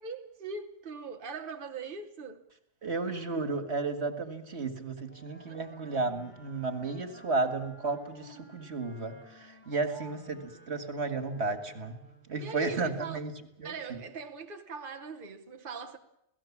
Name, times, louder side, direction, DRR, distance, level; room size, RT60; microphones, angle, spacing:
voice 1, 0.0-2.4 5.5-5.6 9.7-10.2 11.0-11.2 12.4-13.2 13.6-16.0, right 4 dB, 55° right, 1.3 m, -41 dB
voice 2, 2.8-12.0 12.3-13.3 13.6-14.0, right 3 dB, 75° right, 2.2 m, -33 dB
Wind instrument woodwind instrument, 5.0-12.4, equal, 10° left, 4.8 m, -55 dB
28.5 x 18.0 x 7.3 m
omnidirectional pair, 1.1 m